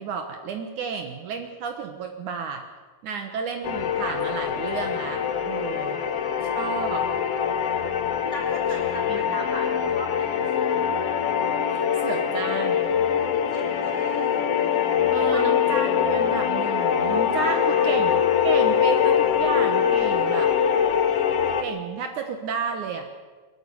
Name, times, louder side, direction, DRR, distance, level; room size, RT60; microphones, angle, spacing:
voice 1, 0.0-2.6 3.0-6.0 6.5-7.1 9.1-9.2 12.0-12.9 15.1-20.5 21.6-23.1, right 6 dB, 65° right, 5 dB, 2.6 m, -32 dB
sound 1, 3.6-21.6, left 8 dB, 65° left, 1.6 m, -23 dB
voice 2, 5.7-6.6 8.3-10.7 13.5-14.5 15.3-15.4 17.3-18.2, equal, 20° left, -1 dB, 5.1 m, -39 dB
22.0 x 14.0 x 9.9 m, 1.3 s
omnidirectional pair, 4.0 m